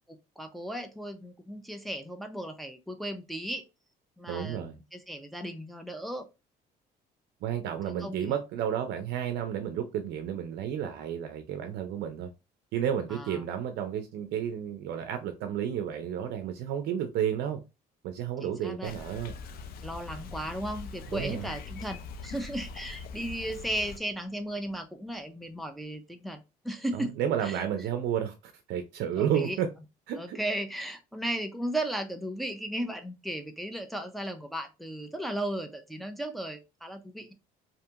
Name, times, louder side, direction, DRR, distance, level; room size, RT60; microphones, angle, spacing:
voice 1, 0.1-3.6 4.2-6.3 7.9-8.4 13.1-13.4 18.4-18.9 19.8-27.1 27.4-27.6 29.2-29.6 30.2-37.3, right 1 dB, ahead, 0.4 m, -36 dB
voice 2, 4.3-4.8 7.4-12.3 12.7-17.6 18.0-19.3 21.1-21.5 26.9-29.7 30.1-30.4, right 9 dB, 75° right, 0.4 m, -31 dB
Bicycle, 18.8-24.0, left 4 dB, 65° left, 0.4 m, -42 dB
2.7 x 2.6 x 2.3 m
cardioid pair, 110°, 17 cm